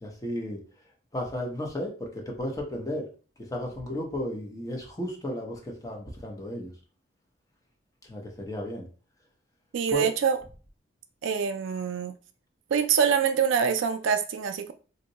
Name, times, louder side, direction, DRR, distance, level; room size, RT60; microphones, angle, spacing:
voice 1, 0.0-0.6 1.1-3.1 3.5-6.7 8.1-8.8 9.9-10.1, left 1 dB, 15° left, 0.7 m, -33 dB
voice 2, 9.7-10.4 11.2-12.1 12.7-14.7, right 7 dB, 65° right, 0.3 m, -25 dB
2.7 x 2.1 x 3.9 m
head